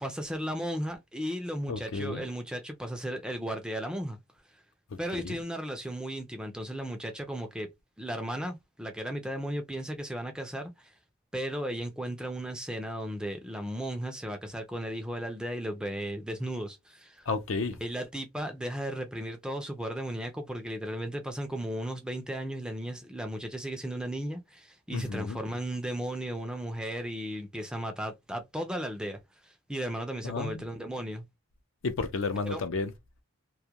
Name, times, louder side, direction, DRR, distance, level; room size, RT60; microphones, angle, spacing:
voice 1, 0.0-4.2 5.0-7.7 8.0-10.9 11.3-17.3 17.8-31.2 32.4-32.6, equal, 5° right, 0.4 m, -35 dB
voice 2, 1.7-2.3 5.2-5.4 17.3-17.8 24.9-25.4 30.2-30.6 31.8-32.9, left 4 dB, 60° left, 0.5 m, -32 dB
2.3 x 2.1 x 2.8 m
head